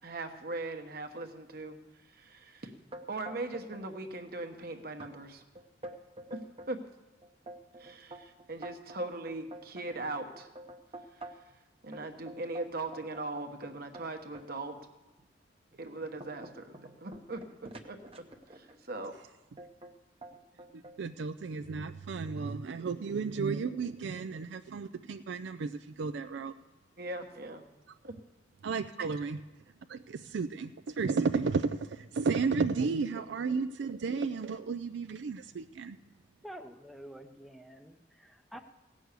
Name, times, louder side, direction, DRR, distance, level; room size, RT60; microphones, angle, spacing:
voice 1, 0.0-1.8 2.1-2.7 3.1-5.4 6.3-6.4 6.7-6.8 7.8-10.5 11.8-14.8 15.7-18.0 18.5-19.1 27.0-27.7 28.0-28.1 29.0-29.1, right 2 dB, 55° right, 6 dB, 1.1 m, -39 dB
sound 1, 2.9-3.8 4.1-4.6 5.0-5.1 5.5-6.7 7.2-11.5 11.9-14.5 15.1-15.2 15.7-18.8 19.6-19.9 20.2-21.0, right 1 dB, 30° right, 0.9 m, -47 dB
voice 2, 20.7-26.5 28.6-29.4 29.9-36.0, right 4 dB, 70° right, 10 dB, 0.4 m, -33 dB
voice 3, 36.4-38.6, equal, ahead, 4 dB, 0.6 m, -48 dB
16.5 x 6.3 x 8.1 m, 1.1 s
head